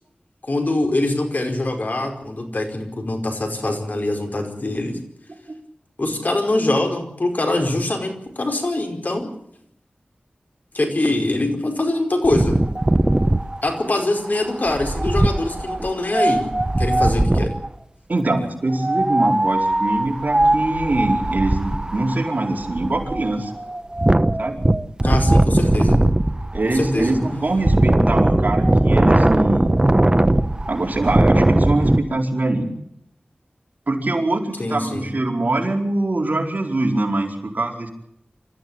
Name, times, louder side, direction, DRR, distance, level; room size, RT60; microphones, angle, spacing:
voice 1, 0.4-5.0 6.0-9.3 10.7-12.6 13.6-16.5 16.8-17.6 25.0-26.0 26.6-27.2 34.6-35.1, left 2 dB, 60° left, 4 dB, 4.9 m, -23 dB
Wind, 12.3-17.7 18.7-32.0, right 1 dB, 25° right, 1.1 m, -19 dB
voice 2, 18.1-23.5 24.4-24.6 26.5-29.7 30.7-32.7 33.9-37.9, right 2 dB, 55° right, 1 dB, 4.6 m, -23 dB
26.5 x 14.5 x 8.9 m, 0.74 s
wide cardioid pair, 65°, 3 cm